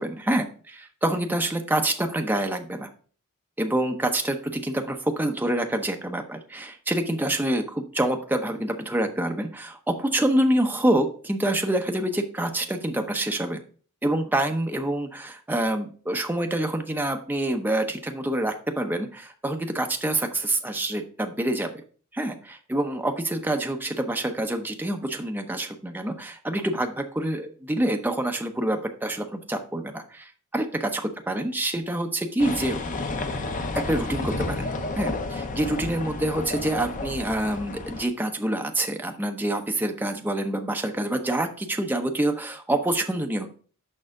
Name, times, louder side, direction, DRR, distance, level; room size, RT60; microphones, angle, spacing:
voice 1, 0.0-2.9 3.6-13.6 14.0-21.7 22.1-31.0 31.3-32.8 33.7-34.7 35.0-43.5, right 1 dB, 10° right, 4 dB, 0.7 m, -26 dB
sound 1, 32.4-38.0, left 2 dB, 35° left, 0.6 m, -31 dB
6.5 x 5.6 x 3.7 m, 0.43 s
head